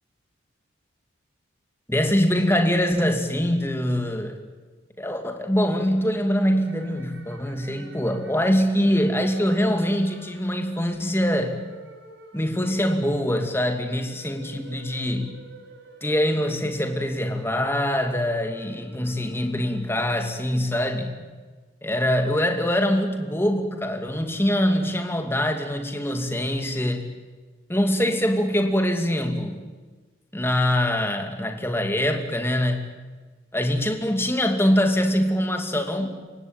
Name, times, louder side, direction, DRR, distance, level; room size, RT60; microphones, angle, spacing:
voice 1, 1.9-4.4 5.0-11.6 12.3-15.3 16.0-21.2 21.8-27.1 27.7-29.6 30.3-32.9 33.5-36.1, equal, 10° left, 5 dB, 2.5 m, -23 dB
sound 1, 5.4-20.7, right 2 dB, 65° right, 5.1 m, -49 dB
29.5 x 17.0 x 9.1 m, 1.4 s
head